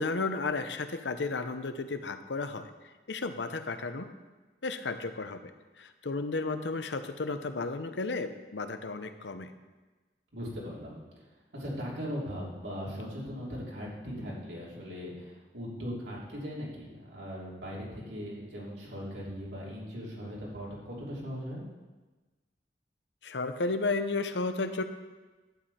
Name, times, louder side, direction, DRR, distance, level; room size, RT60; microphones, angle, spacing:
voice 1, 0.0-2.7 3.1-4.1 4.6-5.5 5.8-9.5 23.2-24.8, left 3 dB, 85° left, 9 dB, 0.8 m, -33 dB
voice 2, 10.3-11.0 11.5-21.6, equal, 85° right, -5 dB, 3.5 m, -39 dB
11.5 x 9.3 x 4.3 m, 1.2 s
head